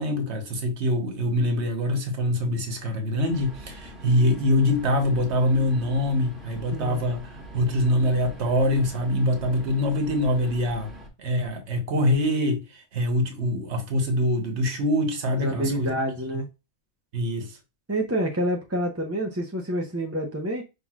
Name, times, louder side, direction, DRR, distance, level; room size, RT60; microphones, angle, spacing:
voice 1, 0.0-10.9 11.2-15.9 17.1-17.6, left 1 dB, 70° right, 1.4 m, -24 dB
sound 1, 3.3-11.1, equal, ahead, 1.2 m, -43 dB
voice 2, 6.7-7.0 15.4-16.5 17.9-20.6, right 1 dB, 15° right, 0.5 m, -28 dB
5.8 x 3.7 x 2.4 m
omnidirectional pair, 1.2 m